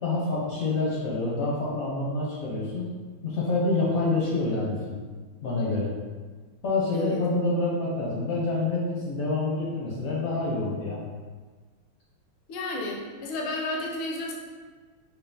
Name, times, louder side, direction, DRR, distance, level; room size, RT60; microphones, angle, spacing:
voice 1, 0.0-2.9 3.2-5.0 5.4-5.9 6.6-11.0, left 2 dB, 65° left, -6 dB, 0.8 m, -27 dB
voice 2, 12.5-14.3, left 2 dB, 80° left, -1 dB, 1.4 m, -32 dB
5.5 x 2.3 x 2.7 m, 1.5 s
omnidirectional pair, 2.2 m